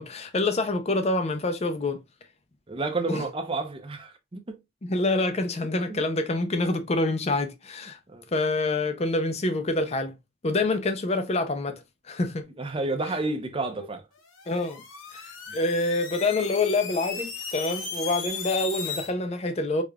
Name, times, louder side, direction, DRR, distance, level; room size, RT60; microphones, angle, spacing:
voice 1, 0.0-2.0 3.1-3.3 4.8-8.0 8.3-10.1 10.4-12.5 13.8-13.9 14.5-14.8 15.1-19.8, left 2 dB, 30° left, 0.5 m, -26 dB
voice 2, 2.7-4.6 5.9-6.0 8.1-8.3 12.6-14.0, right 3 dB, 25° right, 0.6 m, -30 dB
sound 1, 14.3-19.1, left 5 dB, 80° left, 1.0 m, -36 dB
4.9 x 2.4 x 2.2 m
head